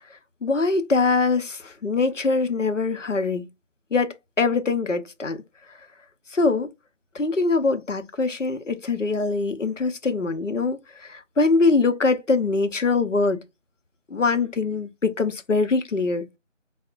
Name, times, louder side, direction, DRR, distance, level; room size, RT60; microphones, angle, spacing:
voice 1, 0.4-3.4 3.9-5.4 6.3-6.7 7.1-10.8 11.1-13.4 14.1-16.2, left 3 dB, 70° left, 0.7 m, -23 dB
4.1 x 2.1 x 2.4 m
figure-of-eight pair, 175°, 38 cm